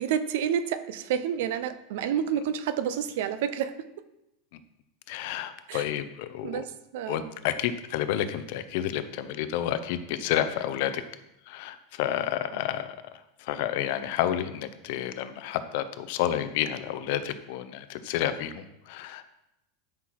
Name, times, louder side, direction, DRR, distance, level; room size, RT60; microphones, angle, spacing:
voice 1, 0.0-3.9 5.7-5.8 6.4-7.3 12.5-12.6, right 9 dB, 60° right, 13 dB, 0.7 m, -29 dB
voice 2, 5.1-6.6 7.1-11.0 11.5-12.9 13.4-19.2, left 11 dB, 50° left, 11 dB, 0.7 m, -30 dB
12.0 x 6.0 x 4.7 m, 0.88 s
supercardioid pair, 175°, 0 cm